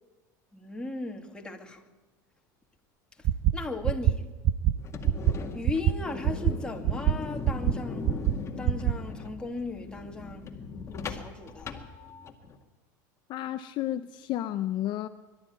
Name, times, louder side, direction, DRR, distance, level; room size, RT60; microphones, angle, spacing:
voice 1, 0.5-1.8 3.5-4.2 5.5-8.1 8.6-10.5 10.8-11.7, left 3 dB, 10° left, 2.4 m, -37 dB
sound 1, 3.2-3.5 3.8-4.1 4.4-4.7 5.0-5.3 5.6-5.9 6.2-6.5 6.8-7.1 7.4-7.7 8.0-8.3 8.6-8.9, right 13 dB, 50° right, 0.8 m, -23 dB
sound 2, 4.7-12.6, left 5 dB, 25° left, 2.1 m, -39 dB
voice 2, 13.3-15.1, left 13 dB, 50° left, 0.7 m, -31 dB
23.0 x 12.5 x 9.5 m
supercardioid pair, 110°, 10 cm